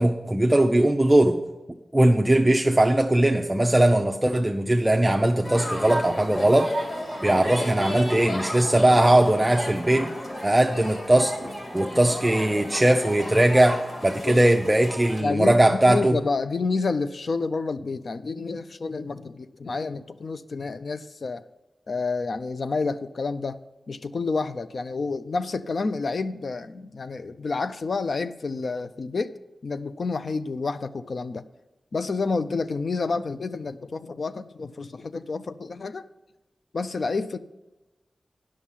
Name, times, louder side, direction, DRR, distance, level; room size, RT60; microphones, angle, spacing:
voice 1, 0.0-1.4 1.9-6.7 7.2-10.1 10.4-11.4 11.7-16.2, right 1 dB, 15° right, 3 dB, 0.5 m, -20 dB
sound 1, 5.4-15.2, equal, 40° left, 2.2 m, -33 dB
voice 2, 15.2-21.5 21.9-23.6 23.9-29.3 29.6-31.5 31.9-36.1 36.7-37.4, left 4 dB, 65° left, 12 dB, 0.4 m, -29 dB
9.8 x 6.3 x 7.3 m, 1.1 s
wide cardioid pair, 90°, 0 cm